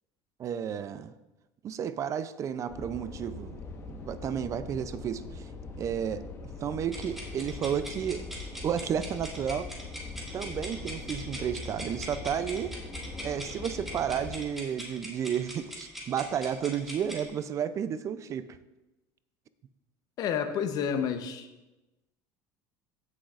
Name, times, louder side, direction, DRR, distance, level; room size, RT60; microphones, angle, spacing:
voice 1, 0.4-1.1 1.6-5.5 5.8-6.3 6.6-8.2 8.6-9.7 10.3-12.8 13.2-18.6, right 8 dB, 40° right, 13 dB, 0.4 m, -32 dB
sound 1, 2.7-14.5, left 3 dB, 35° left, 1.2 m, -42 dB
sound 2, 6.9-17.3, equal, 5° right, 2.3 m, -42 dB
voice 2, 20.2-21.5, left 7 dB, 50° left, 9 dB, 0.8 m, -30 dB
15.5 x 6.2 x 2.5 m, 1.0 s
supercardioid pair, 115°, 8 cm